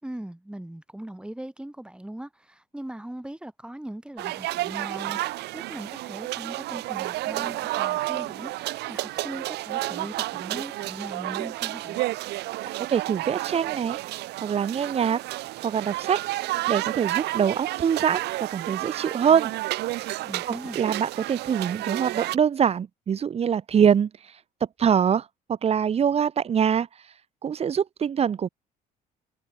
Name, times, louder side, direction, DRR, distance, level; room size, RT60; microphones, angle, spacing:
voice 1, 0.0-5.2 5.5-12.0 20.2-20.8, right 1 dB, 5° right, 4.8 m, -39 dB
sound 1, 4.2-22.4, right 18 dB, 80° right, 1.1 m, -31 dB
voice 2, 12.9-14.0 14.4-15.2 15.6-16.2 16.7-19.5 20.8-24.1 24.8-26.9 27.4-28.5, right 8 dB, 35° right, 0.9 m, -24 dB
cardioid pair, 110°, 17 cm